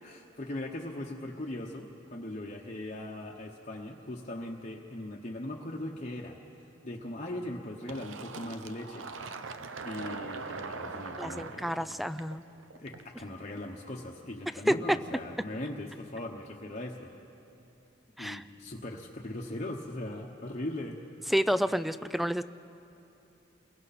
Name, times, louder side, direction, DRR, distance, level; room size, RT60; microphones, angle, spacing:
voice 1, 0.0-6.4 6.8-9.1 9.8-11.8 12.7-17.1 18.2-21.0, left 1 dB, 35° left, -1 dB, 1.1 m, -39 dB
Fill (with liquid), 7.9-13.3, right 4 dB, 75° right, 0.8 m, -41 dB
voice 2, 11.2-12.4 14.7-15.0 18.2-18.4 21.3-22.4, equal, ahead, 13 dB, 0.4 m, -29 dB
29.5 x 22.0 x 4.2 m, 2.8 s
head